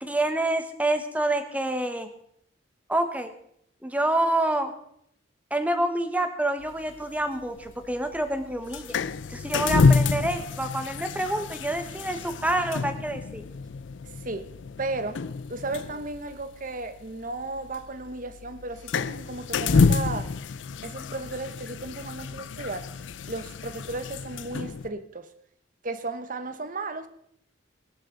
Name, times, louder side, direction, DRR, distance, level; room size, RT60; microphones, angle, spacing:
voice 1, 0.0-2.1 2.9-3.3 3.8-4.7 5.5-8.9 9.3-13.5, right 1 dB, 10° right, 8 dB, 1.2 m, -27 dB
sound 1, 6.6-24.9, left 4 dB, 85° left, 0.5 m, -29 dB
voice 2, 14.8-15.2 15.5-20.3 20.8-22.9 23.2-25.3 25.8-27.1, right 2 dB, 45° right, 12 dB, 1.1 m, -34 dB
18.5 x 11.5 x 3.9 m, 0.70 s
head